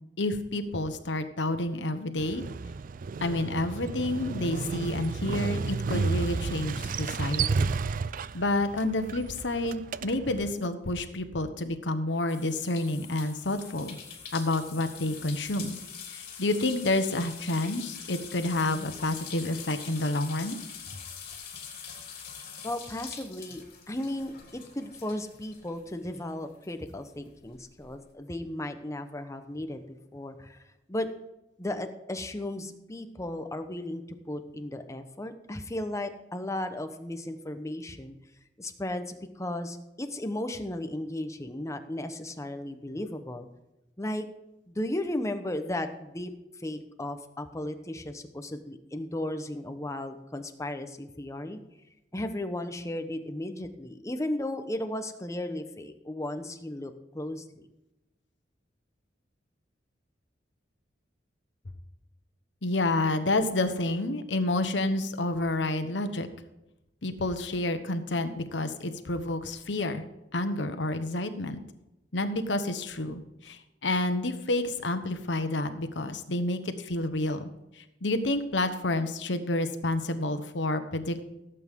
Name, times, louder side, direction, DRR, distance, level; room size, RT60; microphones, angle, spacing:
voice 1, 0.2-2.4 3.2-7.7 8.3-14.0 14.3-15.8 16.1-20.6 62.6-66.3 67.0-70.0 70.3-71.6 72.1-77.5 77.8-81.2, left 2 dB, 85° left, 8 dB, 1.2 m, -29 dB
Motorcycle, 2.2-10.5, right 4 dB, 50° right, 0.4 m, -32 dB
sound 1, 12.3-26.3 26.6-27.9, left 7 dB, 55° left, 2.9 m, -44 dB
voice 2, 22.6-29.8 30.1-30.6 30.9-31.1 31.6-38.2 38.6-43.5 44.0-44.2 44.7-46.3 46.6-51.6 52.1-57.4, left 1 dB, 15° left, 7 dB, 1.0 m, -35 dB
17.0 x 8.4 x 3.7 m, 0.93 s
head